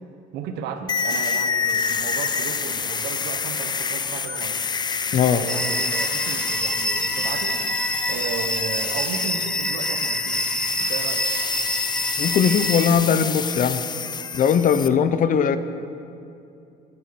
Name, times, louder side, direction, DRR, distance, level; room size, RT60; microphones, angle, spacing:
voice 1, 0.3-4.6 5.3-7.6 8.1-10.5 10.8-11.3, right 7 dB, 90° right, 8 dB, 1.1 m, -34 dB
sound 1, 0.9-14.9, left 6 dB, 25° left, 0.5 m, -28 dB
voice 2, 5.1-5.4 12.2-13.8 14.3-15.6, left 7 dB, 50° left, 12 dB, 0.8 m, -19 dB
sound 2, 5.5-12.9, equal, 5° left, 0.9 m, -26 dB
10.5 x 10.5 x 8.5 m, 2.7 s
cardioid pair, 110°, 17 cm